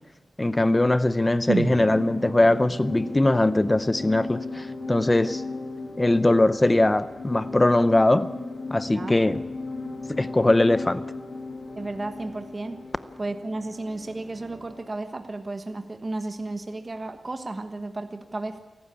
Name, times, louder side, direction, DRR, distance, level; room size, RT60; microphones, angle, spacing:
voice 1, 0.4-5.4 6.0-8.3 8.7-9.4 10.1-11.0, left 2 dB, 20° left, 13 dB, 0.7 m, -21 dB
sound 1, 1.5-14.9, left 3 dB, 85° left, 5.7 m, -37 dB
sound 2, 1.5-5.5 5.8-5.9, right 5 dB, 90° right, 0.6 m, -35 dB
voice 2, 11.7-12.8 13.2-18.6, right 2 dB, 30° right, 6 dB, 1.3 m, -33 dB
27.5 x 12.5 x 8.6 m, 1.2 s
wide cardioid pair, 140°, 0 cm